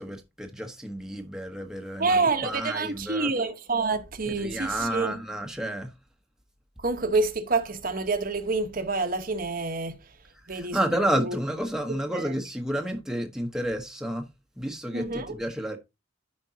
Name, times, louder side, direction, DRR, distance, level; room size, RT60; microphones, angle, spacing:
voice 1, 0.0-3.3 4.2-5.9 10.5-14.3 14.6-15.8, right 1 dB, 5° right, 1.0 m, -31 dB
voice 2, 2.0-5.1 6.8-10.0 10.5-10.9 11.2-11.4 12.1-12.2 14.9-15.3, right 3 dB, 50° right, 1.1 m, -27 dB
13.0 x 5.2 x 2.8 m
head